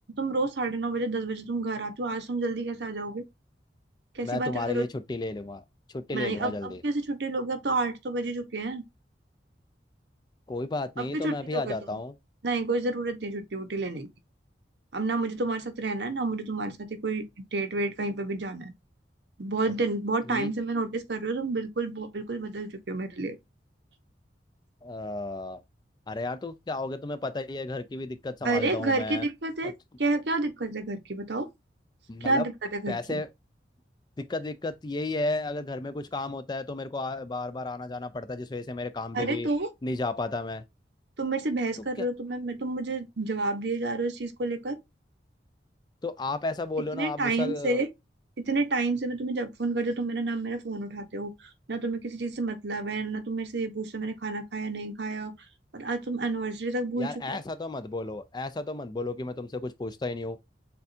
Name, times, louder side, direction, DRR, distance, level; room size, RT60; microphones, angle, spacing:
voice 1, 0.2-3.3 4.1-4.8 6.1-8.8 11.0-12.0 12.4-14.1 14.9-18.7 19.4-23.4 28.4-29.7 30.0-31.5 32.2-32.4 32.7-33.2 39.1-39.7 41.2-44.8 46.9-47.9 48.4-51.3 51.7-55.3 55.7-57.4, right 2 dB, 70° right, 0.9 m, -30 dB
voice 2, 4.2-5.6 5.9-6.8 10.5-12.1 20.3-20.5 24.8-25.6 26.1-29.3 29.6-29.7 32.1-32.5 32.9-33.3 34.2-39.5 39.8-40.6 42.0-42.1 46.0-47.8 57.0-60.4, left 2 dB, 25° left, 0.4 m, -33 dB
6.7 x 2.4 x 2.6 m
head